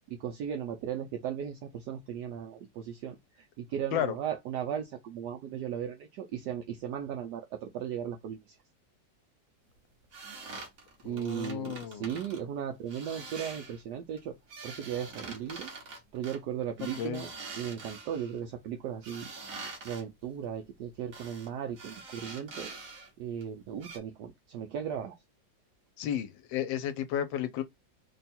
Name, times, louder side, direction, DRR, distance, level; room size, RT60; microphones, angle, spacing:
voice 1, 0.1-3.2 3.6-8.6 11.0-14.4 14.6-15.7 16.1-17.3 17.6-19.3 19.8-22.7 23.2-25.2, right 9 dB, 75° right, 1.1 m, -36 dB
sound 1, 10.1-12.4 12.9-13.8 14.2-18.4 19.0-20.0 21.1-21.5 21.7-23.1 23.4-23.5 23.8-24.0, right 3 dB, 55° right, 1.3 m, -45 dB
voice 2, 11.0-12.2 17.0-17.2 26.0-27.6, left 10 dB, 85° left, 1.4 m, -33 dB
3.4 x 2.3 x 4.1 m
omnidirectional pair, 2.0 m